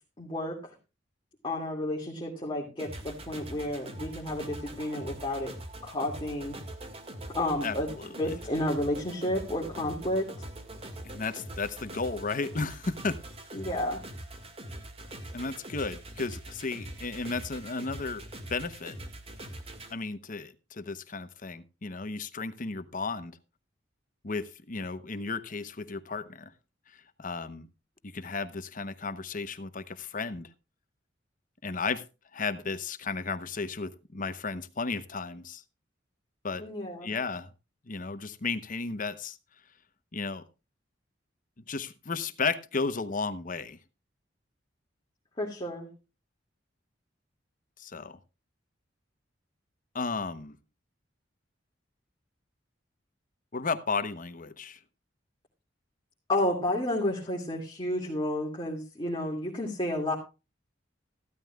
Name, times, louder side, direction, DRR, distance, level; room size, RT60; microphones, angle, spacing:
voice 1, 0.2-0.6 1.4-5.5 5.8-6.6 7.3-7.9 8.2-10.3 13.5-14.0 36.6-37.1 45.4-45.9 56.3-60.1, left 1 dB, 25° left, 2.4 m, -31 dB
sound 1, 2.8-19.9, right 1 dB, 30° right, 2.0 m, -43 dB
voice 2, 7.6-8.1 11.0-13.2 15.3-18.2 18.5-19.0 19.9-23.4 24.2-26.5 26.9-27.7 28.0-30.5 31.6-32.0 32.3-35.6 36.4-36.6 37.0-37.5 37.9-39.4 40.1-40.5 41.7-43.8 47.8-48.2 49.9-50.6 53.5-54.8, left 4 dB, 45° left, 0.9 m, -34 dB
15.0 x 13.0 x 2.4 m
head